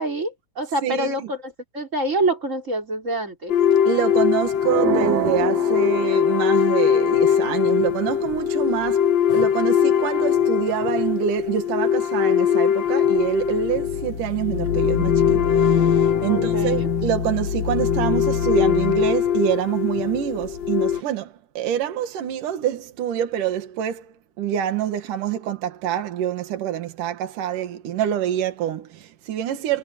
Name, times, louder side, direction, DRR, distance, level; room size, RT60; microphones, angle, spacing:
voice 1, 0.0-3.5 16.3-16.9, right 2 dB, 20° right, 4.5 m, -26 dB
voice 2, 0.8-1.3 3.9-9.1 9.3-29.8, right 10 dB, 75° right, 3.3 m, -26 dB
sound 1, 3.5-21.0, left 8 dB, 60° left, 1.2 m, -21 dB
sound 2, 4.6-6.7, right 8 dB, 55° right, 2.6 m, -27 dB
omnidirectional pair, 3.8 m